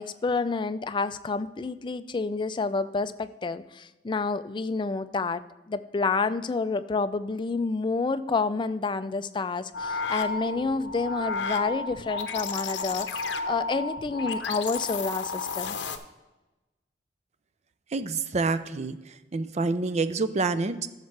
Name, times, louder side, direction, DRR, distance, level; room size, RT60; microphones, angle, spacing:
voice 1, 0.0-15.8, left 4 dB, 25° left, 13 dB, 0.4 m, -29 dB
sound 1, 9.7-16.0, left 4 dB, 70° left, 0.7 m, -32 dB
voice 2, 17.9-20.9, right 3 dB, 40° right, 13 dB, 0.4 m, -28 dB
12.5 x 6.7 x 3.3 m, 1.1 s
head